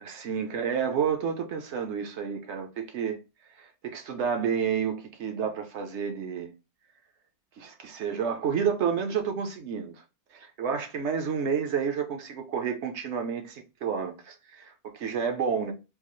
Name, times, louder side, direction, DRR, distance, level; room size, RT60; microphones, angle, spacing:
voice 1, 0.0-3.2 3.6-6.5 7.6-9.9 10.3-15.7, right 7 dB, 60° right, 0.8 m, -30 dB
3.8 x 2.4 x 3.0 m
omnidirectional pair, 1.7 m